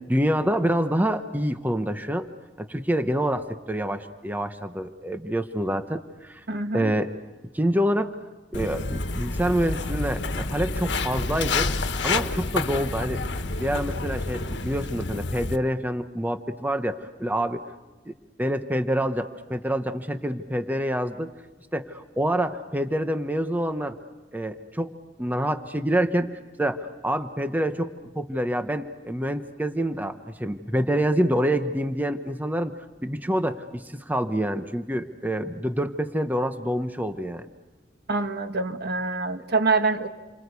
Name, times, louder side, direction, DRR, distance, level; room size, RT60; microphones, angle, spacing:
voice 1, 0.0-2.3 2.6-6.4 6.7-7.1 7.5-8.2 8.5-11.7 12.0-13.2 13.6-17.6 18.1-18.2 18.4-21.3 21.7-24.0 24.3-26.3 26.6-30.1 30.4-32.7 33.0-37.5, equal, 10° right, 8 dB, 0.9 m, -27 dB
voice 2, 6.5-6.9 38.1-40.1, right 3 dB, 60° right, 7 dB, 1.5 m, -25 dB
Walk footsteps, 8.5-15.6, left 3 dB, 70° left, 1.5 m, -29 dB
28.5 x 25.0 x 8.3 m, 1.2 s
head